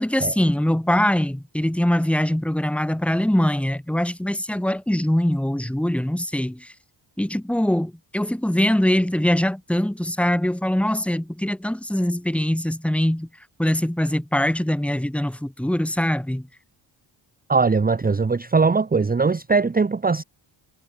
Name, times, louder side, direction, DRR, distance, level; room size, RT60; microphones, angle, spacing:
voice 1, 0.0-6.7 7.2-13.3 13.6-16.5, left 1 dB, 5° left, 1.7 m, -22 dB
voice 2, 17.5-20.2, right 4 dB, 20° right, 0.9 m, -20 dB
cardioid pair, 95°, 46 cm